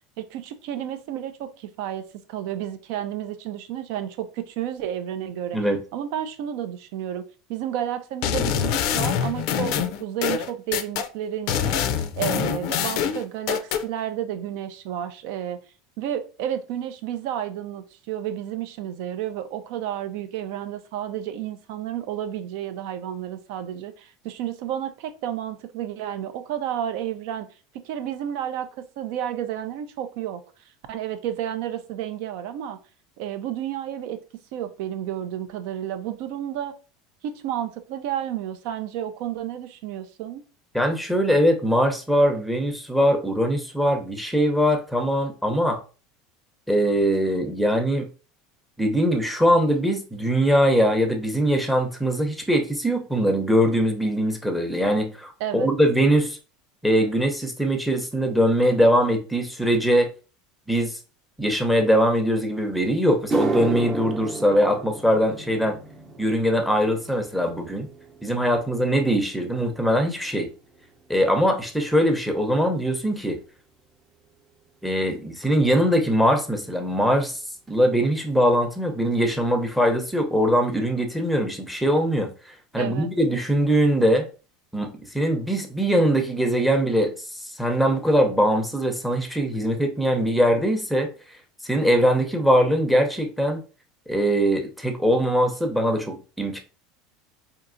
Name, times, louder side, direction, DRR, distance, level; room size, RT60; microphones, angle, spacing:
voice 1, 0.2-7.2 7.5-15.6 16.0-27.5 27.8-30.4 30.9-32.8 33.2-34.2 34.5-36.7 37.2-40.4 55.4-55.7 82.8-83.1, right 10 dB, 70° right, 10 dB, 0.5 m, -31 dB
sound 1, 8.2-11.1 11.5-13.8, left 8 dB, 65° left, 0.4 m, -25 dB
voice 2, 40.7-45.8 46.7-48.1 48.8-56.4 56.8-60.1 60.7-61.0 61.4-65.8 66.2-67.9 68.2-70.5 71.1-73.4 74.8-77.4 77.7-82.3 82.7-84.3 84.7-87.1 87.6-91.1 91.6-93.6 94.1-96.6, equal, ahead, 5 dB, 0.7 m, -21 dB
sound 2, 62.6-62.7 63.1-71.6 71.9-72.3 73.1-73.2 75.9-76.0 77.7-77.8 78.0-78.2 78.5-79.0 79.4-79.5 80.0-80.1, right 3 dB, 30° right, 0.8 m, -34 dB
4.5 x 2.8 x 2.5 m, 0.35 s
supercardioid pair, 130°, 0 cm